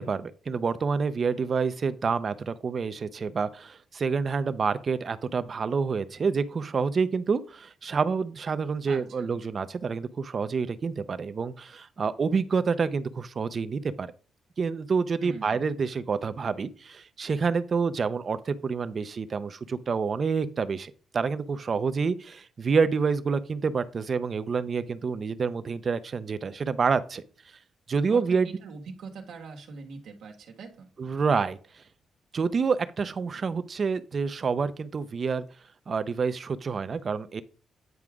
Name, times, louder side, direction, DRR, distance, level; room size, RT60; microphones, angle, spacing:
voice 1, 0.0-14.1 14.6-27.2 27.9-28.5 31.0-31.6 32.3-35.4 35.9-37.4, right 5 dB, 40° right, 0.6 m, -28 dB
voice 2, 8.8-9.3 15.2-15.6 28.1-30.9, right 4 dB, 80° right, 1.4 m, -42 dB
9.3 x 4.8 x 3.6 m
cardioid pair, 110°, 0 cm